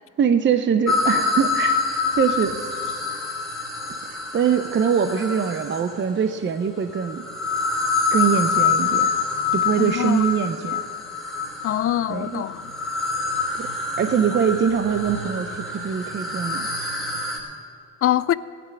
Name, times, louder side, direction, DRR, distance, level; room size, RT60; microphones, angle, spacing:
voice 1, 0.0-1.8 2.2-2.6 4.3-7.2 8.1-9.1 9.5-10.8 12.1-12.4 13.6-13.7 14.0-16.7, right 7 dB, 40° right, 0.7 m, -23 dB
sound 1, 0.9-6.1 6.9-17.4, left 4 dB, ahead, 3.3 m, -26 dB
voice 2, 9.8-10.2 11.6-12.7 18.0-18.3, left 12 dB, 50° left, 0.4 m, -23 dB
16.0 x 6.1 x 9.8 m
cardioid pair, 90°, 30 cm